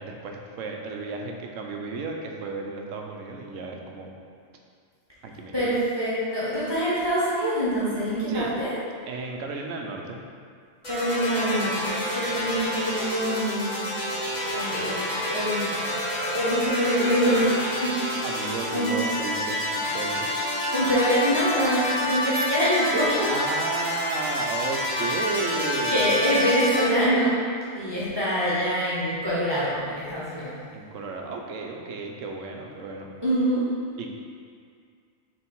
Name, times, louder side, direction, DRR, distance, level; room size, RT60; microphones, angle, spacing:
voice 1, 0.0-4.1 5.2-5.7 8.3-8.5 9.1-10.2 18.2-20.3 23.3-26.2 30.7-33.1 34.0-34.1, right 3 dB, 85° right, 1 dB, 1.1 m, -33 dB
voice 2, 5.5-8.7 10.9-14.2 14.5-15.7 16.1-18.2 18.7-18.9 20.7-23.3 25.9-27.4 27.7-30.5 33.2-33.6, equal, 20° right, -10 dB, 1.3 m, -25 dB
sound 1, 10.8-26.8, left 1 dB, 35° left, 1.7 m, -28 dB
6.9 x 3.5 x 4.5 m, 2.2 s
omnidirectional pair, 1.3 m